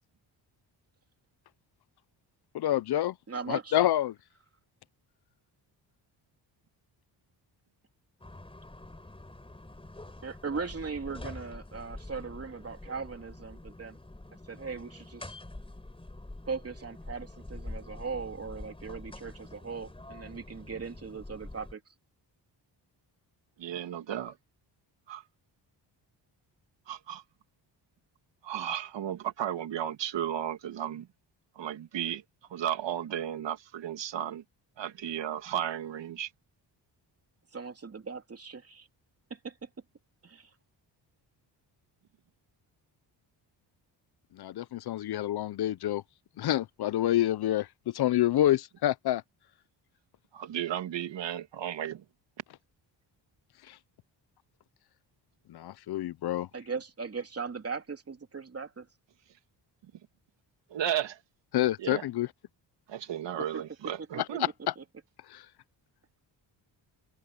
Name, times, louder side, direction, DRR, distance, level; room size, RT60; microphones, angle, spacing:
voice 1, 2.5-3.1 3.5-4.1 44.4-46.0 46.4-49.2 53.7-53.8 55.5-56.5 61.5-62.3 64.7-64.8 65.3-65.4, left 13 dB, 60° left, 0.7 m, -27 dB
voice 2, 3.3-3.8 10.2-14.0 14.5-15.4 16.5-21.8 37.5-38.9 39.3-39.7 40.2-40.5 56.5-58.9 63.4-63.6 64.1-64.4 64.8-64.9, right 5 dB, 30° right, 3.2 m, -39 dB
sound 1, 8.2-21.7, left 2 dB, 10° left, 4.7 m, -46 dB
voice 3, 23.6-24.3 25.1-25.2 26.9-27.2 28.4-31.1 31.6-32.2 32.5-34.4 34.8-36.3 50.3-52.0 60.7-61.2 61.8-62.0 62.9-64.5, right 10 dB, 75° right, 2.6 m, -34 dB
open air
cardioid pair, 90°, 44 cm